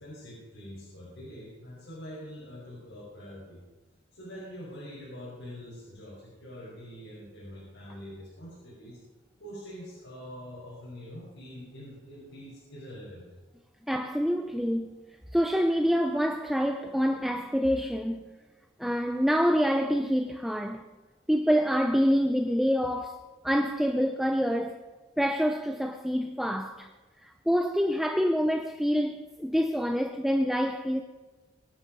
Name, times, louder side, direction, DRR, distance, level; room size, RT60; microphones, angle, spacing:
voice 1, 0.0-3.6 4.1-9.0 9.4-13.3, equal, 80° left, 5.5 m, -44 dB
voice 2, 13.9-15.0 15.3-18.2 18.8-20.8 21.3-23.2 23.4-24.8 25.2-26.9 27.2-31.0, equal, ahead, 0.5 m, -26 dB
23.0 x 8.5 x 5.4 m
head